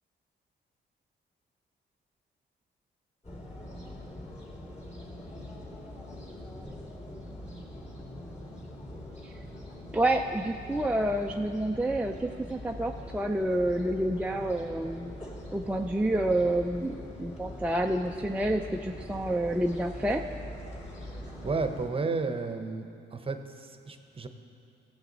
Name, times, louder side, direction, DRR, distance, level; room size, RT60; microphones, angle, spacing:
sound 1, 3.2-21.9, left 1 dB, 35° left, 2.8 m, -43 dB
voice 1, 9.9-15.1 15.5-20.2, right 1 dB, 5° right, 2 dB, 0.4 m, -28 dB
voice 2, 21.4-22.8 23.1-24.3, right 4 dB, 30° right, 7 dB, 0.9 m, -32 dB
17.0 x 8.0 x 4.0 m, 2.6 s
cardioid pair, 90°, 20 cm